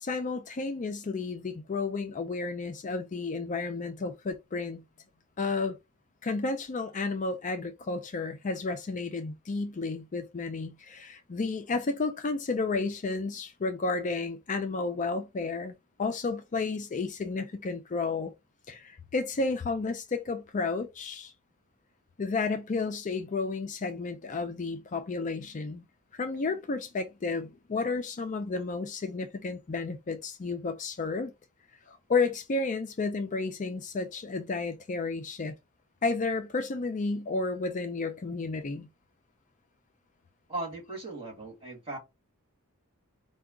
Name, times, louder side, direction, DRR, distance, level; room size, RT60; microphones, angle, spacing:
voice 1, 0.0-4.8 5.4-5.8 6.2-15.7 16.0-18.3 18.7-21.3 22.2-25.8 26.1-31.3 31.9-35.6 36.0-38.9, left 3 dB, 35° left, 0.4 m, -32 dB
voice 2, 40.5-42.0, right 2 dB, 25° right, 2.1 m, -37 dB
4.7 x 2.3 x 3.6 m
head